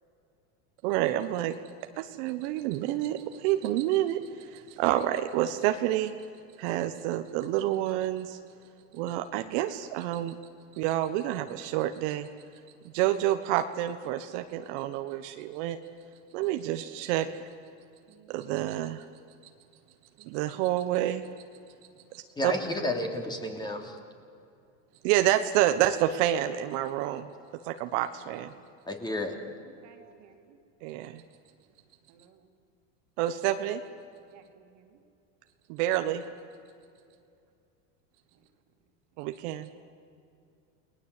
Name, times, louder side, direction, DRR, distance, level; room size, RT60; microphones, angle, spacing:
voice 1, 0.8-1.5 2.0-6.1 6.6-8.4 8.9-10.4 10.8-12.3 12.9-15.8 16.3-17.3 18.3-19.0 20.3-21.2 22.1-22.5 25.0-27.3 27.6-28.5 30.8-31.2 33.2-33.8 35.7-36.2 39.2-39.7, right 13 dB, 60° right, 8 dB, 1.3 m, -28 dB
voice 2, 16.4-17.1 18.1-18.5 20.2-20.6 22.1-22.2 29.5-30.6 32.1-32.5 34.3-35.0 38.3-38.4, right 9 dB, 45° right, 5 dB, 2.9 m, -58 dB
voice 3, 22.4-24.0 28.9-29.4, left 1 dB, 10° left, 3 dB, 3.1 m, -31 dB
29.5 x 20.5 x 8.5 m, 2.5 s
supercardioid pair, 140°, 38 cm